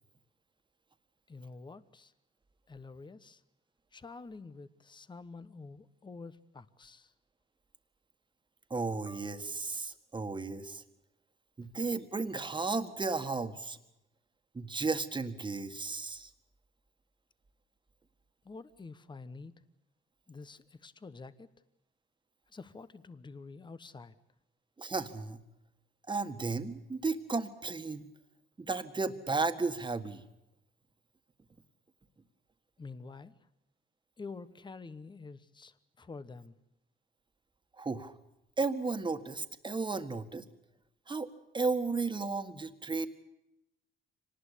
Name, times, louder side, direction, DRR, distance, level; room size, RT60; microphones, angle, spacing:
voice 1, 1.3-2.1 2.7-3.4 3.9-7.1 11.6-11.7 18.4-19.6 20.3-21.5 22.5-24.2 32.8-33.4 34.2-36.6, left 4 dB, 25° left, 14 dB, 1.1 m, -48 dB
voice 2, 8.7-10.8 11.6-13.8 14.5-16.3 24.8-25.4 26.1-28.0 28.6-30.2 37.8-38.1 38.6-40.5 41.1-41.3 41.5-43.1, right 3 dB, 25° right, 8 dB, 1.8 m, -34 dB
25.0 x 19.0 x 8.4 m, 0.86 s
cardioid pair, 90°, 20 cm